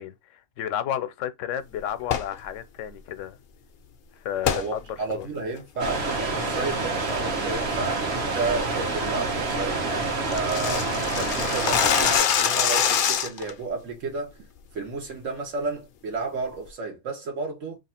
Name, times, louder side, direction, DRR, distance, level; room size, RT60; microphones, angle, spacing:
voice 1, 0.0-3.4 4.2-5.3 11.3-11.4, left 10 dB, 80° left, 0.9 m, -32 dB
sound 1, 2.0-2.4 4.4-4.7 5.1-5.2 5.8-6.0 6.4-6.7 7.1-7.4 7.7-7.8 8.2-8.5 8.8-8.9 9.2-9.3 9.5-9.6 9.9-13.5, left 8 dB, 60° left, 0.6 m, -24 dB
voice 2, 4.4-14.4 14.7-17.8, right 3 dB, 85° right, 1.3 m, -32 dB
sound 2, 5.8-12.2, right 3 dB, 60° right, 1.2 m, -27 dB
3.0 x 2.4 x 4.2 m
omnidirectional pair, 1.3 m